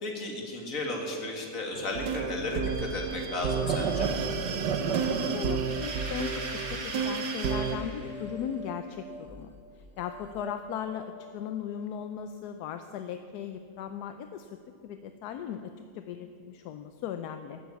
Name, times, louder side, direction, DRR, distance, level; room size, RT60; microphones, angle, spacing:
voice 1, 0.0-4.1, left 2 dB, 50° left, 0 dB, 2.4 m, -34 dB
sound 1, 1.8-7.8, right 5 dB, 80° right, 1.6 m, -30 dB
voice 2, 5.1-9.5 10.0-14.5 14.8-17.6, left 8 dB, 75° left, 8 dB, 1.1 m, -38 dB
sound 2, 5.1-13.7, equal, 5° right, 1.6 m, -48 dB
sound 3, 5.6-8.4, right 1 dB, 25° right, 4.5 m, -42 dB
12.5 x 9.4 x 8.2 m, 2.4 s
omnidirectional pair, 1.8 m